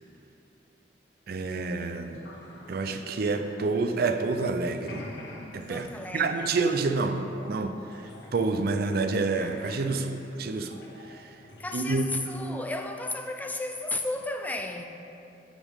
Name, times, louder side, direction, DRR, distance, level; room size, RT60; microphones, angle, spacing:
voice 1, 1.3-2.2 2.7-5.1 5.5-5.9 6.1-10.8 11.1-11.3 11.7-12.0, right 3 dB, 60° right, 0.5 m, -28 dB
sound 1, 1.5-4.4 4.7-12.6, left 1 dB, 80° left, 0.9 m, -49 dB
voice 2, 5.7-6.5 11.6-14.8, left 2 dB, 10° left, 0.4 m, -33 dB
11.0 x 5.4 x 3.6 m
head